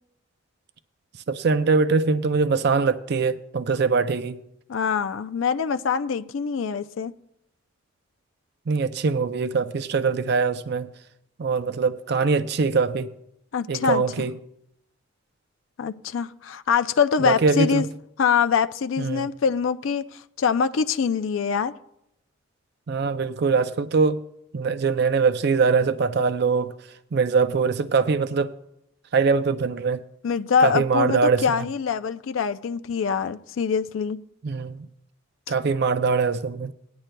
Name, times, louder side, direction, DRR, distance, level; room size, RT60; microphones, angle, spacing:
voice 1, 1.3-4.4 8.7-10.9 11.4-13.1 13.7-14.3 17.2-17.9 19.0-19.3 22.9-24.2 24.5-26.7 27.1-28.5 29.1-30.0 30.6-31.7 34.4-34.9 35.5-36.7, right 4 dB, 55° right, 0.5 m, -22 dB
voice 2, 4.7-7.1 13.5-14.0 15.8-17.8 18.2-21.7 30.2-34.2, left 6 dB, 90° left, 0.4 m, -24 dB
19.5 x 10.5 x 2.2 m
head